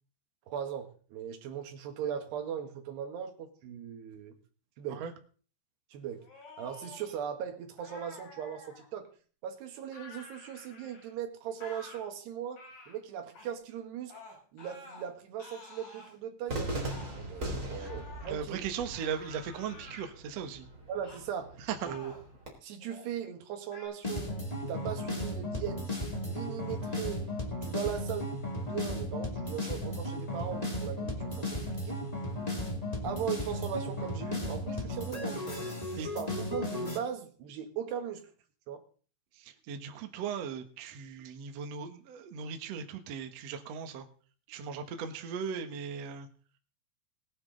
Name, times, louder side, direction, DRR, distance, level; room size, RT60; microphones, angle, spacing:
voice 1, 0.5-4.4 4.8-5.0 5.9-6.2 6.6-9.1 9.4-14.2 14.5-18.6 20.9-21.6 21.9-22.1 22.6-24.4 24.7-25.8 26.3-27.2 27.6-28.3 28.6-32.0 33.0-35.7 35.9-38.3 38.7-38.8, right 9 dB, 70° right, 5 dB, 3.6 m, -39 dB
sound 1, 6.2-7.1 7.8-8.9 9.9-11.1 11.6-12.0 12.5-12.9 13.3-13.5 14.1-15.1 15.4-16.1 16.9-17.1 17.8-18.4 18.9-20.1 21.0-21.3 21.7-22.3 22.8-23.1 23.7-23.9, left 2 dB, 50° left, 8.4 m, -50 dB
Cheering / Fireworks, 16.5-22.5, right 1 dB, 20° right, 3.6 m, -40 dB
voice 2, 18.2-20.7 21.6-22.0 35.9-36.1 39.3-44.1 44.5-46.3, right 7 dB, 85° right, 6 dB, 1.4 m, -38 dB
sound 2, 24.0-37.0, left 1 dB, 15° left, 1.4 m, -35 dB
20.5 x 9.6 x 4.0 m, 0.42 s
omnidirectional pair, 5.3 m